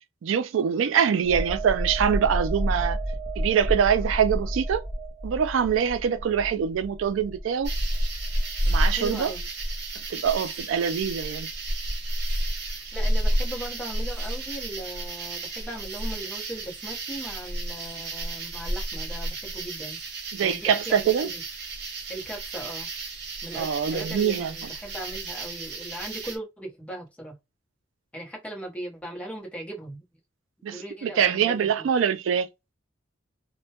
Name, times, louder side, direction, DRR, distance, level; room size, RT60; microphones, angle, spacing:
voice 1, 0.2-3.0 3.4-4.8 5.2-7.7 8.7-9.3 10.1-11.5 20.3-21.3 23.5-24.7 30.6-32.5, right 7 dB, 85° right, 0.3 m, -24 dB
sound 1, 1.2-8.7 9.0-9.2, right 1 dB, 20° right, 0.6 m, -31 dB
sound 2, 7.6-26.4, right 1 dB, 60° right, 0.8 m, -31 dB
voice 2, 9.0-9.4 12.9-20.0 20.4-21.4 22.1-22.9 23.4-27.3 28.1-30.0 30.7-31.7, right 1 dB, 5° left, 0.8 m, -38 dB
2.1 x 2.1 x 2.8 m
head